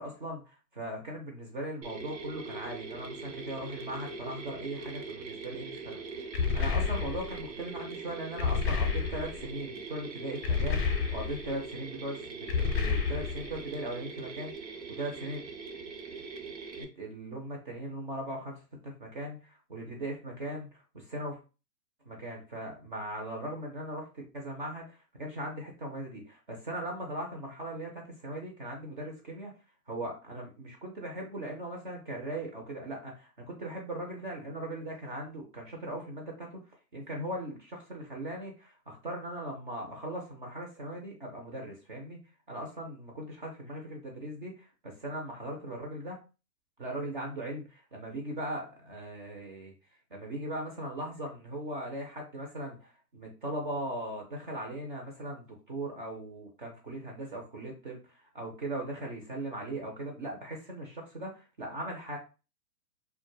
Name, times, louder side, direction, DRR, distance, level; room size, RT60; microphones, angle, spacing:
voice 1, 0.0-10.8 11.1-14.5 14.9-15.4 16.8-21.4 22.1-29.5 29.9-36.6 36.9-42.2 42.5-46.2 46.8-49.7 50.1-62.2, right 1 dB, 35° right, 0 dB, 0.4 m, -39 dB
Mechanisms, 1.8-16.8, right 4 dB, 90° right, 0.7 m, -42 dB
sound 1, 6.3-7.4 8.4-9.5 10.4-11.5 12.5-13.6, left 6 dB, 40° left, 0.5 m, -30 dB
2.2 x 2.1 x 3.0 m, 0.31 s
hypercardioid pair, 130°, 50 cm